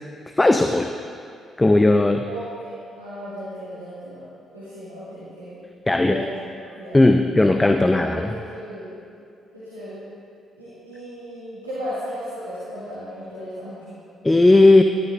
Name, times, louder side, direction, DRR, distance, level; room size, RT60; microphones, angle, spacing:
voice 1, 0.4-0.9 1.6-2.2 5.9-6.2 6.9-8.4 14.2-14.8, left 2 dB, 15° left, 7 dB, 0.5 m, -16 dB
voice 2, 2.3-4.3 4.5-5.6 6.0-6.4 6.8-7.0 8.0-9.0 9.5-10.0 10.5-13.8, equal, 90° right, -14 dB, 1.9 m, -35 dB
15.5 x 12.5 x 2.5 m, 2.4 s
figure-of-eight pair, 40°, 0 cm